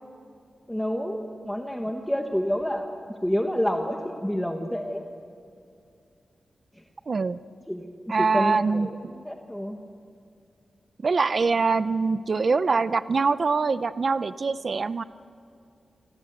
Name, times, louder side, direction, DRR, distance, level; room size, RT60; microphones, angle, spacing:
voice 1, 0.7-2.9 3.2-5.0 6.7-6.8 7.7-9.8, equal, 5° left, 3 dB, 1.3 m, -29 dB
voice 2, 7.1-7.4 8.1-9.1 11.0-15.0, right 4 dB, 40° right, 14 dB, 0.6 m, -24 dB
28.0 x 24.0 x 8.0 m, 2.5 s
wide cardioid pair, 160°, 0 cm